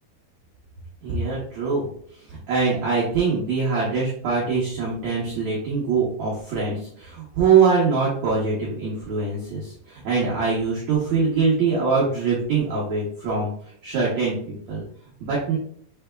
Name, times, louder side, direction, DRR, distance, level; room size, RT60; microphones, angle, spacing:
voice 1, 1.0-1.9 2.3-13.5 13.8-14.8 15.2-15.6, right 5 dB, 75° right, -6 dB, 1.6 m, -23 dB
6.9 x 3.3 x 2.2 m, 0.62 s
omnidirectional pair, 4.5 m